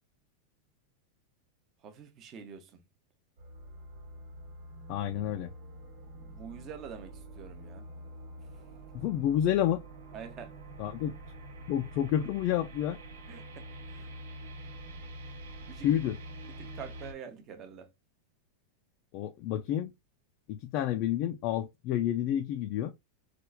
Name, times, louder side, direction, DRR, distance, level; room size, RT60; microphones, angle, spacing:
voice 1, 1.8-2.8 6.2-7.9 10.1-10.5 13.3-14.1 15.7-15.9 16.6-17.9, right 7 dB, 25° right, 0.6 m, -46 dB
sound 1, 3.4-17.1, right 1 dB, 75° right, 1.0 m, -46 dB
voice 2, 4.9-5.5 8.9-9.8 10.8-11.1 11.7-13.0 15.8-16.2 19.1-19.9 20.5-22.9, left 11 dB, 35° left, 0.3 m, -29 dB
4.3 x 2.4 x 2.2 m
supercardioid pair, 170°, 0 cm